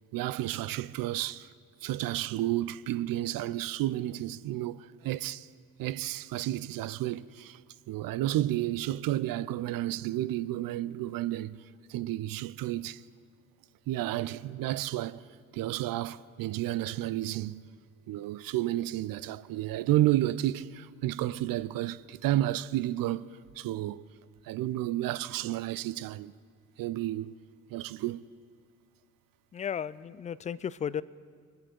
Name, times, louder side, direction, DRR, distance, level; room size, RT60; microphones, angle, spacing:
voice 1, 0.1-1.5 1.8-5.5 5.8-7.6 7.9-11.6 11.9-13.0 13.9-15.2 15.5-17.6 18.1-23.3 23.6-24.0 24.4-26.3 26.8-27.3 27.7-28.3, right 14 dB, 55° right, 0.6 m, -31 dB
voice 2, 29.5-31.0, left 8 dB, 20° left, 0.3 m, -34 dB
22.5 x 8.6 x 4.5 m
hypercardioid pair, 50°, 42 cm